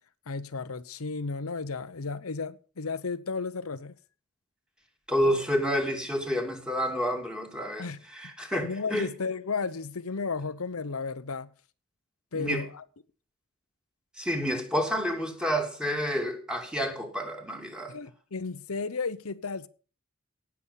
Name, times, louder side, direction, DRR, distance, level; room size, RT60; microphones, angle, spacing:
voice 1, 0.3-3.9 7.8-8.0 8.6-11.5 12.3-12.8 17.9-19.7, left 4 dB, 75° left, 0.8 m, -33 dB
voice 2, 5.1-9.1 12.3-12.6 14.2-17.9, equal, 5° right, 2.8 m, -29 dB
18.0 x 7.3 x 7.2 m
head